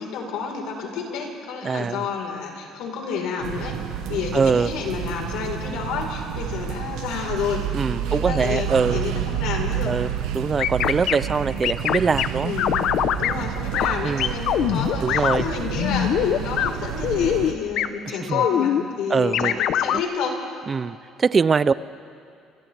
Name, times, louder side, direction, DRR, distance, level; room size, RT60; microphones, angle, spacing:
voice 1, 0.0-3.8 4.1-7.7 8.0-9.9 11.4-11.5 12.4-12.8 13.2-20.4, left 5 dB, 85° left, 1 dB, 3.9 m, -30 dB
voice 2, 1.6-2.1 4.3-4.7 7.7-9.0 9.8-12.5 14.0-14.3 15.0-15.4 18.1-18.5 19.1-19.6 19.9-20.0 20.7-21.7, right 5 dB, 25° right, 16 dB, 0.4 m, -23 dB
sound 1, 3.4-17.5, right 9 dB, 85° right, 1.2 m, -30 dB
sound 2, 10.6-11.2 11.6-12.3 12.6-13.3 13.7-13.9 14.2-15.5 15.8-16.7 17.0-17.5 17.8-17.9 18.3-18.8 19.3-20.0, left 10 dB, 60° left, 0.7 m, -22 dB
29.5 x 27.5 x 3.3 m, 2.5 s
cardioid pair, 140°, 0 cm